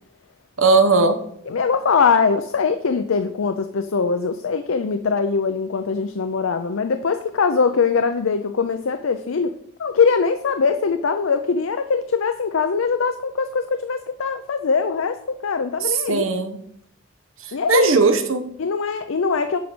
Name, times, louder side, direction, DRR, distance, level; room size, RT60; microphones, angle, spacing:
voice 1, 0.6-1.2 15.8-16.6 17.4-18.5, right 3 dB, 80° right, 8 dB, 1.1 m, -18 dB
voice 2, 1.5-9.5 9.8-16.3 17.5-17.9 18.6-19.6, left 5 dB, 80° left, 8 dB, 0.5 m, -22 dB
8.5 x 5.1 x 6.1 m, 0.69 s
head